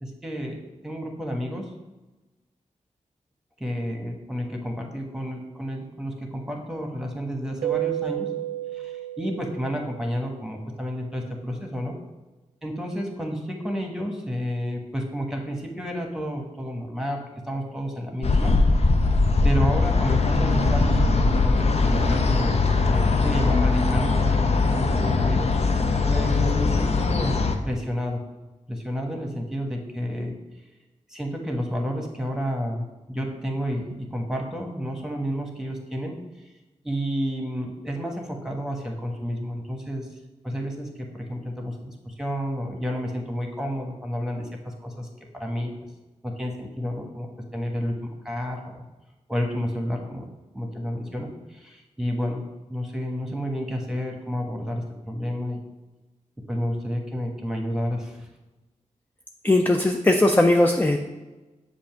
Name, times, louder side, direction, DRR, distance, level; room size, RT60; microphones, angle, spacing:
voice 1, 0.0-1.7 3.6-8.3 8.7-11.9 12.6-18.5 19.4-25.5 26.1-27.4 27.6-28.2 28.7-30.4 31.1-36.5 36.8-40.1 40.4-45.1 45.3-45.7 46.2-48.8 49.3-50.3 50.5-55.6 56.5-58.3, equal, 5° right, 2 dB, 1.2 m, -31 dB
Keyboard (musical), 7.6-10.1, right 14 dB, 80° right, 0.4 m, -31 dB
sound 1, 18.2-27.6, left 3 dB, 55° left, 0.6 m, -21 dB
voice 2, 59.4-61.0, left 1 dB, 15° left, 4 dB, 0.4 m, -19 dB
7.1 x 2.6 x 5.7 m, 1.1 s
cardioid pair, 55°, 13 cm